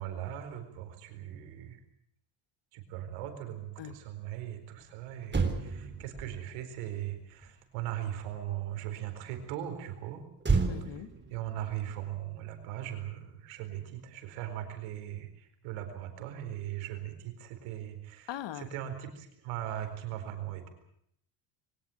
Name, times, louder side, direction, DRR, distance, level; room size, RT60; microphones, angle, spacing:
voice 1, 0.0-1.8 2.7-10.2 11.3-20.7, right 11 dB, 90° right, 7 dB, 4.4 m, -39 dB
Motor vehicle (road), 4.8-4.9 5.2-8.8 10.4-13.0 13.3-13.5, right 4 dB, 20° right, 3.7 m, -34 dB
voice 2, 10.7-11.1 18.3-18.7, left 11 dB, 60° left, 13 dB, 1.7 m, -40 dB
22.5 x 19.0 x 8.5 m, 0.71 s
supercardioid pair, 85°, 50 cm